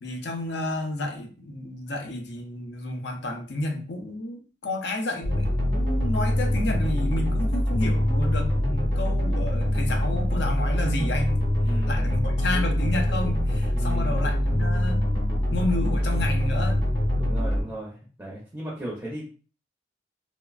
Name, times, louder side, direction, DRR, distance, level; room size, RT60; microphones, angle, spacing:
voice 1, 0.0-11.4 11.9-15.0 15.5-16.8, left 2 dB, 65° left, 3 dB, 0.5 m, -31 dB
sound 1, 5.2-17.6, left 1 dB, 25° left, 0.7 m, -24 dB
voice 2, 11.6-12.1 13.7-14.3 17.2-19.3, right 1 dB, 10° right, -5 dB, 0.6 m, -36 dB
3.0 x 2.0 x 2.3 m, 0.38 s
head